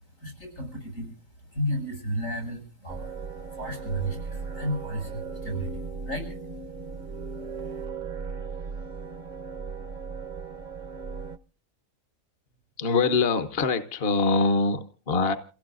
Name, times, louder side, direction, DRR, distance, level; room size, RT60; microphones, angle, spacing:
voice 1, 0.2-3.1 3.5-6.4, equal, 85° left, 7.6 m, -33 dB
sound 1, 2.9-11.4, right 5 dB, 40° right, 0.8 m, -37 dB
voice 2, 12.8-15.4, left 4 dB, 50° left, 1.2 m, -24 dB
28.0 x 16.5 x 2.5 m
omnidirectional pair, 1.4 m